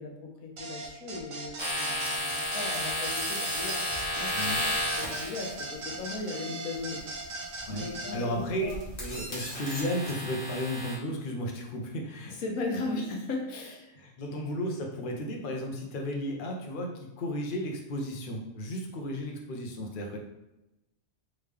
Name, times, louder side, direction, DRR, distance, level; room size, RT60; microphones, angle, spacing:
voice 1, 0.0-3.8 4.1-7.3 7.7-8.8 12.3-14.1, left 3 dB, 75° left, 1 dB, 1.3 m, -37 dB
sound 1, 0.6-8.1, right 2 dB, 70° right, 1.1 m, -38 dB
sound 2, 1.6-5.6 7.6-7.9 8.4-11.0, left 1 dB, 30° left, 1.4 m, -33 dB
voice 2, 7.7-8.7 9.0-12.3 14.0-20.2, equal, 45° left, 1 dB, 0.7 m, -34 dB
3.7 x 3.4 x 3.3 m, 0.94 s
omnidirectional pair, 1.5 m